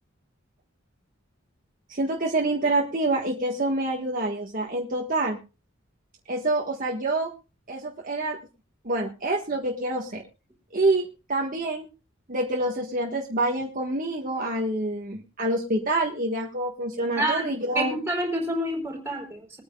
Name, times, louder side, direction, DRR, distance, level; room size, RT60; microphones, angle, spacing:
voice 1, 1.9-5.4 6.3-7.3 7.7-8.4 8.8-10.2 10.7-11.9 12.3-17.9, right 2 dB, 40° right, -1 dB, 1.5 m, -27 dB
voice 2, 17.2-19.6, right 1 dB, 10° right, 1 dB, 3.9 m, -28 dB
22.5 x 9.6 x 2.4 m, 0.31 s
head